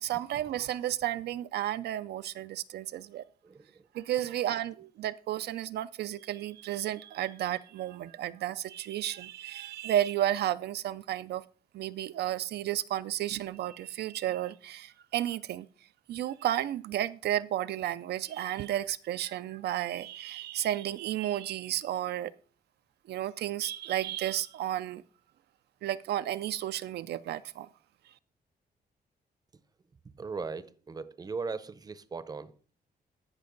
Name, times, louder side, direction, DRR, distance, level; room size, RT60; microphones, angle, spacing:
voice 1, 0.0-3.2 3.9-11.4 11.7-15.7 16.1-22.3 23.1-25.0 25.8-27.7, right 12 dB, 80° right, 0.4 m, -32 dB
voice 2, 3.4-3.9 30.1-32.5, right 4 dB, 25° right, 0.6 m, -38 dB
13.5 x 5.2 x 3.8 m
cardioid pair, 140°, 17 cm